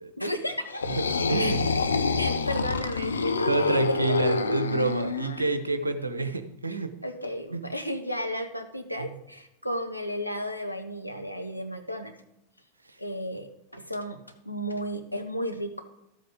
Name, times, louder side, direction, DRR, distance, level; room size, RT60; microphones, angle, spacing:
voice 1, 0.2-0.8 1.4-1.5 2.2-4.1 6.7-12.1 13.0-15.7, equal, 90° left, 5 dB, 1.1 m, -33 dB
sound 1, 0.6-5.5, left 4 dB, 75° left, 0.7 m, -27 dB
voice 2, 1.0-1.6 3.5-6.9 7.5-7.6 9.0-9.1, right 3 dB, 80° right, 9 dB, 0.9 m, -28 dB
13.0 x 7.9 x 5.1 m, 0.86 s
figure-of-eight pair, 90°, 0 cm